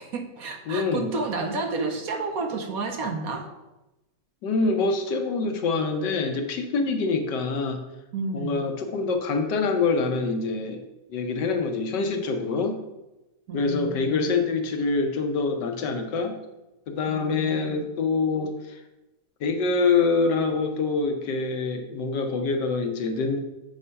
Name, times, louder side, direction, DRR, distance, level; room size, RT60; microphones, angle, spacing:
voice 1, 0.0-3.5 8.1-8.6 13.5-14.3 17.1-17.8, right 3 dB, 65° right, 5 dB, 1.1 m, -31 dB
voice 2, 0.7-1.1 4.4-7.8 8.3-12.8 13.5-16.3 16.9-18.8 19.4-23.4, left 4 dB, 75° left, 5 dB, 1.5 m, -25 dB
6.5 x 4.9 x 5.6 m, 0.99 s
omnidirectional pair, 1.9 m